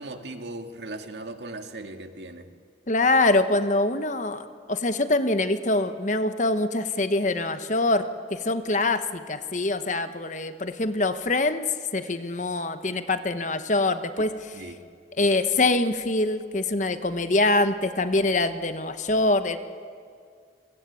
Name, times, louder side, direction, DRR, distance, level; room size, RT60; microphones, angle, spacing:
voice 1, 0.0-2.5 14.2-14.3 14.5-14.8, right 2 dB, 70° right, 5 dB, 2.0 m, -38 dB
voice 2, 2.9-8.0 8.3-11.6 11.9-14.3 15.2-19.6, left 2 dB, 40° left, 10 dB, 1.1 m, -24 dB
29.0 x 22.5 x 8.6 m, 2.2 s
head